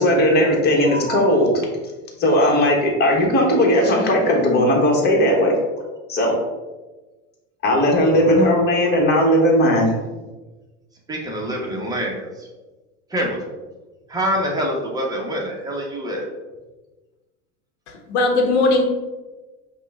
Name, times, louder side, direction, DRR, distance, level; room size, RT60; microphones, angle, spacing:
voice 1, 0.0-1.6 2.2-5.5 6.1-6.4 7.6-9.9, equal, 30° left, -1 dB, 1.3 m, -17 dB
voice 2, 11.1-12.5 13.1-13.4 14.1-16.2, equal, 10° right, -2 dB, 1.1 m, -25 dB
voice 3, 17.9-18.8, left 2 dB, 70° left, 2 dB, 1.1 m, -18 dB
5.5 x 2.4 x 3.5 m, 1.2 s
hypercardioid pair, 110°, 35 cm